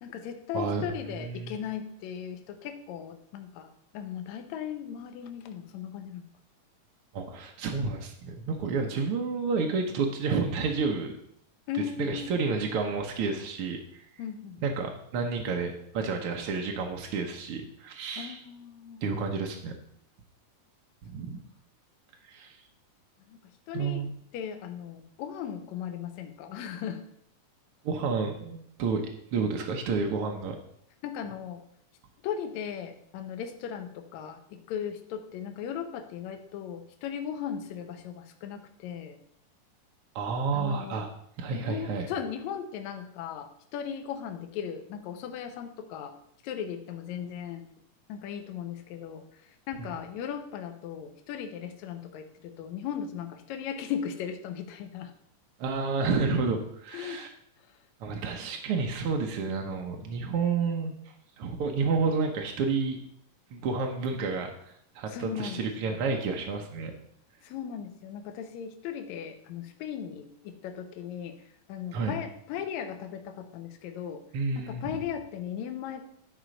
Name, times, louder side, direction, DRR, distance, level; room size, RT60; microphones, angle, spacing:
voice 1, 0.0-6.2 11.7-12.4 14.2-14.6 18.2-19.0 23.3-23.4 23.7-24.0 24.3-27.0 31.0-31.6 32.2-39.2 40.5-41.0 41.5-46.1 46.4-47.7 48.1-49.2 49.7-55.1 56.9-57.2 65.1-66.0 67.4-71.4 71.7-74.2 74.6-76.1, left 8 dB, 70° left, 7 dB, 2.0 m, -37 dB
voice 2, 0.5-0.9 1.2-1.6 7.1-11.1 12.0-14.0 14.6-18.4 19.0-19.7 21.0-21.4 22.3-22.6 23.7-24.1 27.8-29.0 29.3-30.6 40.1-41.1 41.4-42.1 49.8-49.9 55.6-57.3 58.0-60.9 61.4-63.0 63.5-64.5 64.9-66.9 71.9-72.2 74.3-74.9, right 4 dB, 70° right, 2 dB, 1.3 m, -30 dB
11.0 x 4.3 x 5.1 m, 0.70 s
omnidirectional pair, 3.6 m